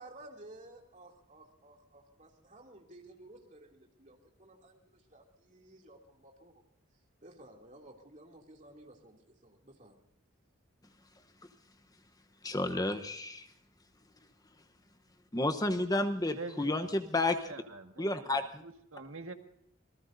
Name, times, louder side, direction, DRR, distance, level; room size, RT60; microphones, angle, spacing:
voice 1, 0.0-6.7 7.2-10.1, right 1 dB, 35° right, 1 dB, 2.7 m, -55 dB
voice 2, 12.4-13.5 15.3-17.5 18.0-18.6, left 2 dB, 15° left, 7 dB, 0.9 m, -31 dB
voice 3, 16.3-16.9 17.2-19.3, right 3 dB, 80° right, 5 dB, 1.7 m, -46 dB
26.5 x 19.5 x 2.6 m, 0.71 s
head